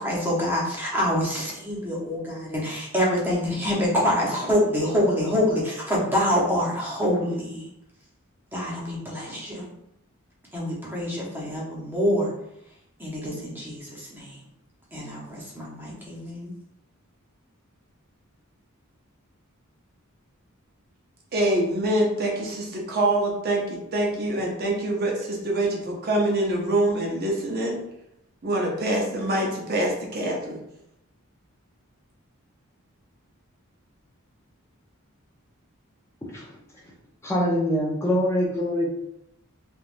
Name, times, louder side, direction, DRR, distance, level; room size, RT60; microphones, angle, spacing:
voice 1, 0.0-7.7 8.5-9.7 10.5-12.3 13.0-14.4 14.9-16.5, equal, 10° right, -5 dB, 0.8 m, -26 dB
voice 2, 21.3-27.8 28.4-30.6, right 1 dB, 50° right, -1 dB, 0.6 m, -25 dB
voice 3, 37.2-38.9, equal, 15° left, -4 dB, 0.5 m, -24 dB
3.4 x 2.4 x 2.5 m, 0.79 s
head